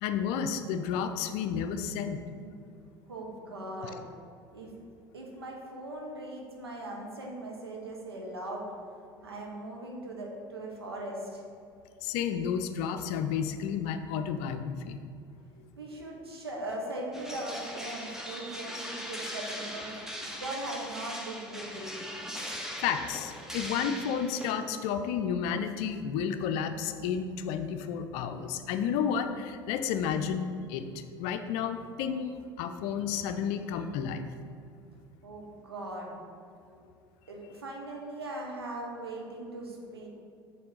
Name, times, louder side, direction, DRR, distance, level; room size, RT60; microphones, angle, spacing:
voice 1, 0.0-2.2 12.0-15.0 22.8-34.2, left 7 dB, 60° left, 8 dB, 0.5 m, -31 dB
voice 2, 3.1-4.1 4.5-4.7 5.1-8.6 9.0-11.4 15.6-22.1 35.2-36.1 36.7-36.8 37.3-40.1, right 1 dB, 90° right, -1 dB, 1.0 m, -40 dB
sound 1, 17.1-24.5, equal, 5° right, 1.0 m, -40 dB
6.6 x 3.5 x 5.5 m, 2.4 s
hypercardioid pair, 70°, 13 cm